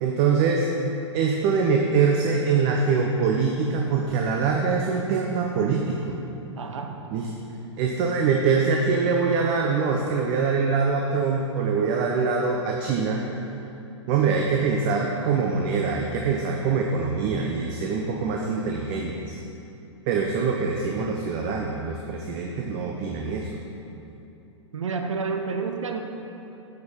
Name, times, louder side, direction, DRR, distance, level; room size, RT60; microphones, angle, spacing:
voice 1, 0.0-0.7 1.1-6.2 7.1-7.3 7.8-13.2 14.1-19.4 20.1-23.5, right 5 dB, 40° right, 1 dB, 0.6 m, -24 dB
voice 2, 6.6-7.0 24.7-26.0, right 5 dB, 80° right, 4 dB, 0.6 m, -29 dB
8.0 x 5.2 x 4.1 m, 2.9 s
hypercardioid pair, 115°, 16 cm